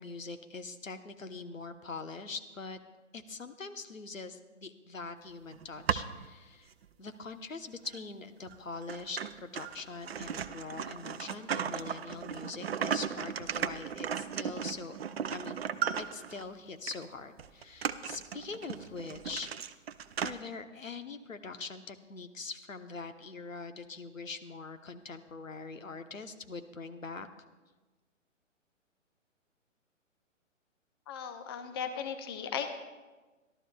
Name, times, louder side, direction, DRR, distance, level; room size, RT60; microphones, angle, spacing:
voice 1, 0.0-2.8 3.1-6.7 7.0-15.0 15.3-15.6 16.0-19.5 20.2-27.3, left 4 dB, 80° left, 8 dB, 1.1 m, -43 dB
sound 1, 5.5-6.3 6.8-6.9 7.9-8.0 8.5-8.6 8.9-16.4 16.9-17.0 17.4-20.3, right 8 dB, 50° right, 0.6 m, -36 dB
voice 2, 31.1-32.7, left 7 dB, 20° left, 8 dB, 0.5 m, -37 dB
25.5 x 12.5 x 2.3 m, 1.2 s
figure-of-eight pair, 125°, 39 cm